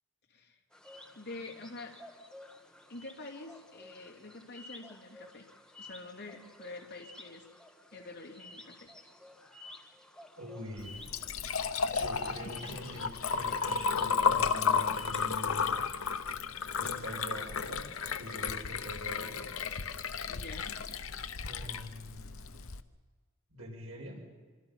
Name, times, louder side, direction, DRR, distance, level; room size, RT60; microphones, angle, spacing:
voice 1, 0.3-0.6 1.1-2.0 2.9-5.5 5.8-7.4 7.9-8.9 12.4-12.9 20.3-20.8, left 2 dB, 50° left, 1 dB, 3.1 m, -46 dB
sound 1, 0.7-15.4, left 2 dB, 5° left, 1.6 m, -53 dB
voice 2, 10.4-11.1 11.9-15.8 16.8-17.9 18.2-19.5 21.4-22.6 23.5-24.2, equal, 75° right, -1 dB, 7.1 m, -44 dB
Liquid, 10.8-22.8, left 5 dB, 75° left, 1.0 m, -33 dB
25.5 x 24.5 x 5.8 m, 1.5 s
head